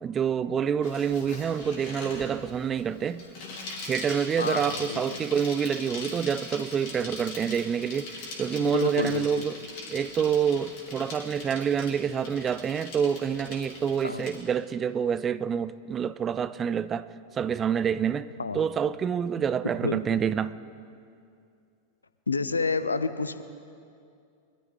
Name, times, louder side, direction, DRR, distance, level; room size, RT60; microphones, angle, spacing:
voice 1, 0.0-3.2 3.8-9.6 9.9-17.1 17.3-20.6, right 7 dB, 25° right, 0.4 m, -27 dB
Bicycle, 0.8-14.4, left 2 dB, 45° left, 3.2 m, -41 dB
voice 2, 4.4-5.2 8.7-9.4 14.0-14.2 18.4-18.6 19.8-20.2 22.3-23.4, left 4 dB, 75° left, 0.6 m, -29 dB
22.5 x 12.5 x 3.8 m
figure-of-eight pair, 90°, 0 cm